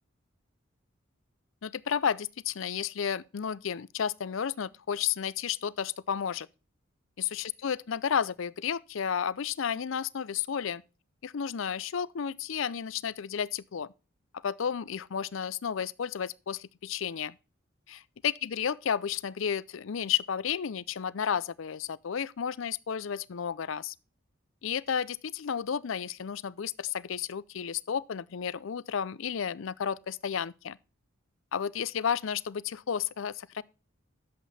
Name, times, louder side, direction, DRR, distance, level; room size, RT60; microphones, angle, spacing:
voice 1, 1.6-6.5 7.3-10.8 11.2-13.9 14.4-17.4 18.2-23.9 24.6-30.8 31.5-33.6, left 7 dB, 70° left, 0.5 m, -32 dB
11.0 x 7.7 x 4.1 m
head